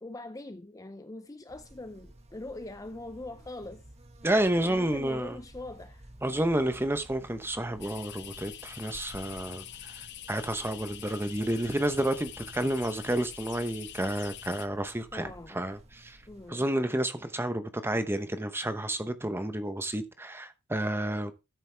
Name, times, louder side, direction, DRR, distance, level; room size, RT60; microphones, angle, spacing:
voice 1, 0.0-3.8 4.6-6.1 15.1-15.6 16.3-16.6, left 2 dB, 15° left, 0.5 m, -42 dB
Buzz, 1.5-16.5, right 1 dB, 30° right, 1.7 m, -53 dB
voice 2, 4.2-5.4 6.2-9.9 10.3-16.2 16.5-21.3, right 1 dB, 10° right, 0.8 m, -30 dB
sound 1, 7.8-14.7, left 11 dB, 50° left, 0.8 m, -45 dB
13.0 x 7.2 x 3.4 m
head